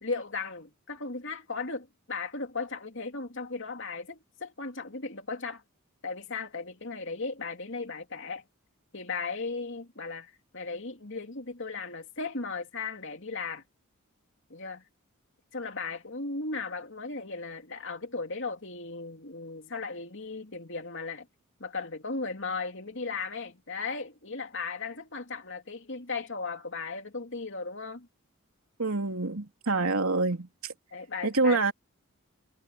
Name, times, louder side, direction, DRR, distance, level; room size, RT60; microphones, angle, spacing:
voice 1, 0.0-5.6 6.0-8.4 8.9-13.6 14.5-14.8 15.5-21.3 21.6-28.1 30.9-31.6, left 4 dB, 60° left, 3.0 m, -36 dB
voice 2, 28.8-30.7 31.2-31.7, right 3 dB, 80° right, 3.1 m, -26 dB
head